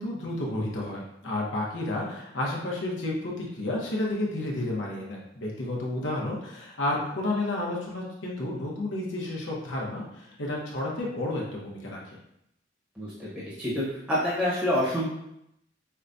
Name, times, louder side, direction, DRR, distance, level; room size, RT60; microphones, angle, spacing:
voice 1, 0.0-12.2, left 1 dB, 85° left, -3 dB, 0.9 m, -31 dB
voice 2, 13.0-15.1, left 1 dB, 5° right, -10 dB, 1.0 m, -27 dB
5.5 x 2.3 x 2.6 m, 0.79 s
head